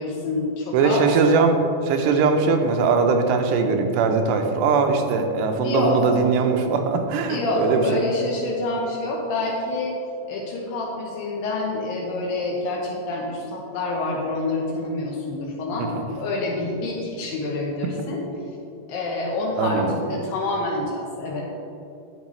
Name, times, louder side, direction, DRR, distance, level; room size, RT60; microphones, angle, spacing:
voice 1, 0.0-1.1 5.6-6.1 7.3-10.0 10.3-15.9 16.2-18.2 18.9-21.5, left 2 dB, 75° left, -2 dB, 2.3 m, -27 dB
voice 2, 0.7-7.8 15.8-16.0 19.6-20.0, right 4 dB, 85° right, 5 dB, 2.8 m, -21 dB
11.0 x 7.3 x 3.1 m, 2.7 s
omnidirectional pair, 4.8 m